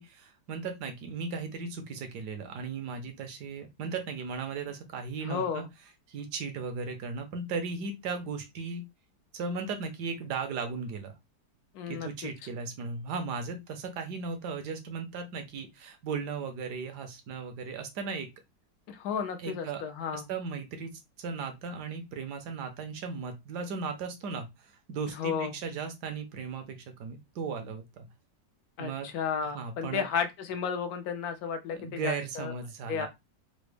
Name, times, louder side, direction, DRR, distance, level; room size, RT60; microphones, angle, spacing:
voice 1, 0.0-5.6 6.1-8.8 9.3-11.1 11.9-18.3 19.4-19.8 20.1-20.9 21.2-28.1 28.8-29.1 29.4-30.1 31.7-33.1, right 5 dB, 70° right, 1.2 m, -36 dB
voice 2, 5.3-5.7 11.7-12.3 18.9-20.2 25.1-25.5 28.8-32.5 32.9-33.1, left 6 dB, 70° left, 1.0 m, -33 dB
3.9 x 2.0 x 3.2 m
omnidirectional pair, 1.9 m